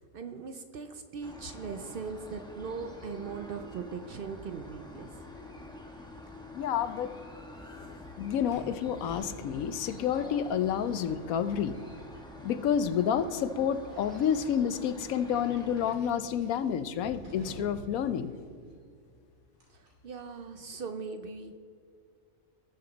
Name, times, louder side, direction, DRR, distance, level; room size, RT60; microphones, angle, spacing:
voice 1, 0.1-5.1 19.7-21.6, right 5 dB, 55° right, 8 dB, 0.6 m, -40 dB
sound 1, 1.2-15.9, left 1 dB, 5° left, 1.0 m, -47 dB
voice 2, 6.5-7.1 8.2-11.8 12.4-18.3, left 8 dB, 85° left, 12 dB, 1.1 m, -29 dB
sound 2, 8.5-11.5 11.7-12.2 12.9-13.1 13.9-14.5 15.3-18.0 18.3-18.4 19.6-19.9, equal, 80° right, 3.2 m, -49 dB
18.5 x 6.7 x 4.0 m, 2.2 s
omnidirectional pair, 1.4 m